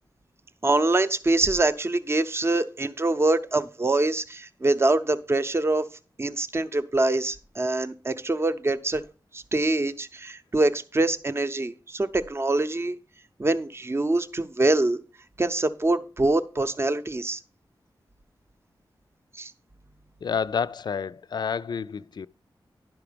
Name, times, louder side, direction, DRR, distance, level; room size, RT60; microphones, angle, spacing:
voice 1, 0.6-5.9 6.2-9.0 9.3-13.0 13.4-15.0 15.4-17.4 19.3-19.5, right 2 dB, 30° right, 0.7 m, -24 dB
voice 2, 20.2-22.3, left 6 dB, 55° left, 0.4 m, -29 dB
11.0 x 5.9 x 5.1 m
wide cardioid pair, 90°, 8 cm